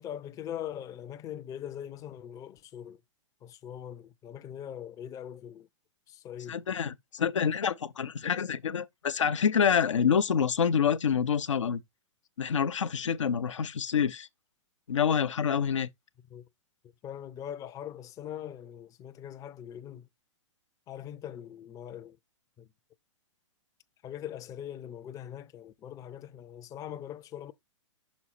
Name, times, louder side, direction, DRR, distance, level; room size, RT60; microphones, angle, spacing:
voice 1, 0.0-3.0 3.4-5.7 6.1-6.6 16.3-16.5 17.0-20.1 20.9-22.2 22.6-22.7 24.0-27.5, left 10 dB, 20° left, 0.5 m, -41 dB
voice 2, 6.5-11.8 12.4-14.3 14.9-15.9, left 7 dB, 80° left, 0.7 m, -27 dB
6.2 x 4.1 x 4.1 m
hypercardioid pair, 115°, 16 cm